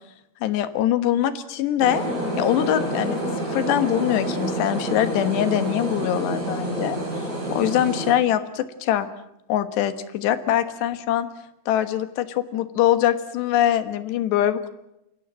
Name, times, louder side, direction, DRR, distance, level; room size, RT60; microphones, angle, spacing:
voice 1, 0.4-2.0 2.4-3.2 3.5-7.0 7.5-9.1 9.5-11.3 11.7-14.7, left 11 dB, 75° left, 11 dB, 3.3 m, -23 dB
sound 1, 1.8-8.1, right 1 dB, 35° right, 8.8 m, -28 dB
29.5 x 16.5 x 7.6 m, 0.86 s
omnidirectional pair, 5.2 m